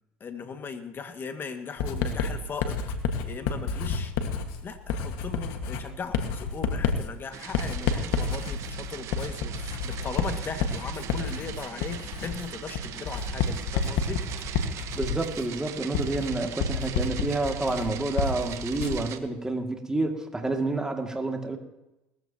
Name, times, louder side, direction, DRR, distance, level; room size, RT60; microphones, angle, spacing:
voice 1, 0.2-4.1 4.6-14.3, left 5 dB, 35° left, 7 dB, 1.9 m, -38 dB
Writing, 1.8-19.1, left 5 dB, 75° left, 1.7 m, -30 dB
sound 1, 7.3-19.2, right 10 dB, 55° right, 1.2 m, -40 dB
voice 2, 14.9-21.6, right 2 dB, 10° right, 3 dB, 2.4 m, -29 dB
19.5 x 14.5 x 2.9 m, 0.95 s
supercardioid pair, 85°, 6 cm